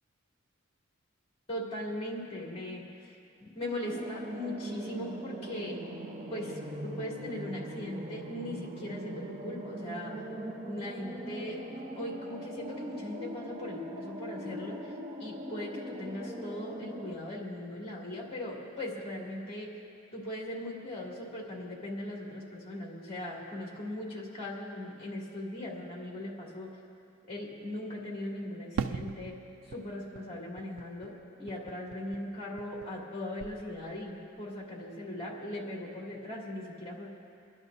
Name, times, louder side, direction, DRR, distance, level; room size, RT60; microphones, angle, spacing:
voice 1, 1.5-5.8 6.3-10.1 10.7-11.6 11.9-14.9 15.2-19.7 20.1-26.7 27.3-29.4 29.6-31.1 31.4-37.1, left 1 dB, 30° left, -3 dB, 2.3 m, -39 dB
sound 1, 3.8-17.1, right 1 dB, 30° right, 0.7 m, -41 dB
Fireworks, 28.8-33.1 33.4-34.2, right 6 dB, 70° right, 0.4 m, -41 dB
28.0 x 11.0 x 2.6 m, 2.6 s
head